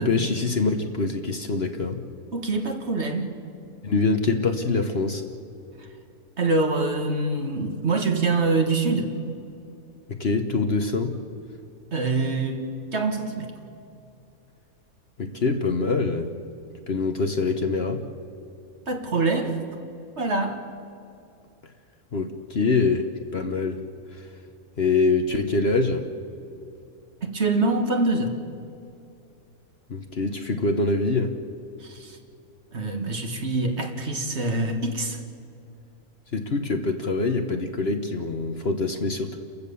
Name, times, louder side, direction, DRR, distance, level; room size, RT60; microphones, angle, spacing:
voice 1, 0.0-2.0 3.8-5.2 10.1-11.1 15.2-16.3 16.9-18.0 22.1-23.8 24.1-24.3 24.8-26.1 29.9-31.3 36.3-39.4, left 3 dB, 45° left, 6 dB, 1.2 m, -24 dB
voice 2, 2.3-3.3 5.8-5.9 6.4-9.2 11.9-13.5 18.9-19.6 20.2-20.6 27.2-28.4 31.8-32.2 32.7-35.2, right 3 dB, 45° right, 4 dB, 1.8 m, -25 dB
30.0 x 15.0 x 7.0 m, 2.6 s
omnidirectional pair, 1.6 m